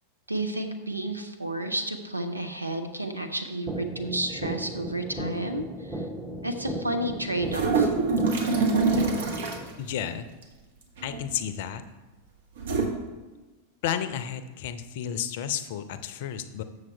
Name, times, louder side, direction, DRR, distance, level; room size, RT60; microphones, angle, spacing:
voice 1, 0.3-6.0 6.4-7.9, right 1 dB, 85° right, 7 dB, 0.7 m, -31 dB
sound 1, 3.7-9.7, right 1 dB, 10° right, 0.8 m, -36 dB
sound 2, 7.4-9.7 11.0-11.4 12.6-12.9, right 4 dB, 60° right, 1.1 m, -25 dB
voice 2, 9.8-10.3 11.0-11.8 13.8-16.6, left 9 dB, 50° left, 11 dB, 0.5 m, -32 dB
7.4 x 6.4 x 4.5 m, 1.2 s
figure-of-eight pair, 90°, 0 cm